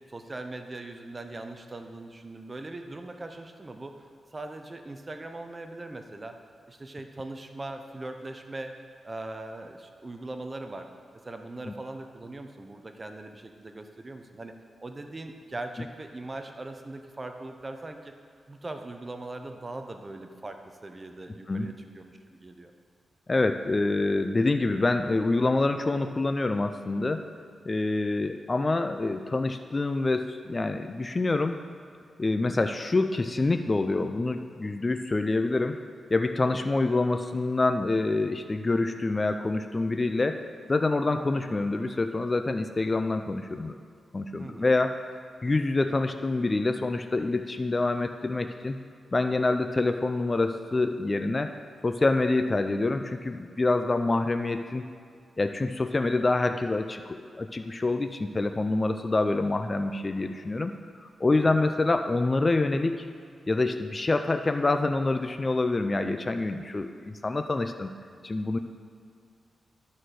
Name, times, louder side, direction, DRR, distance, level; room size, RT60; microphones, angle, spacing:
voice 1, 0.1-6.4 6.7-8.8 9.0-10.9 11.2-14.5 14.8-18.1 18.5-22.7 44.4-44.7 45.5-45.6 61.4-61.7, right 2 dB, 25° right, 5 dB, 0.6 m, -40 dB
voice 2, 23.3-27.2 27.7-31.6 32.2-35.8 36.1-40.4 40.7-43.7 44.1-45.0 45.4-48.8 49.1-51.5 51.8-54.8 55.4-60.7 61.0-63.1 63.5-67.9 68.2-68.6, left 2 dB, 25° left, 7 dB, 0.3 m, -26 dB
11.0 x 4.2 x 6.3 m, 2.2 s
wide cardioid pair, 115°, 0 cm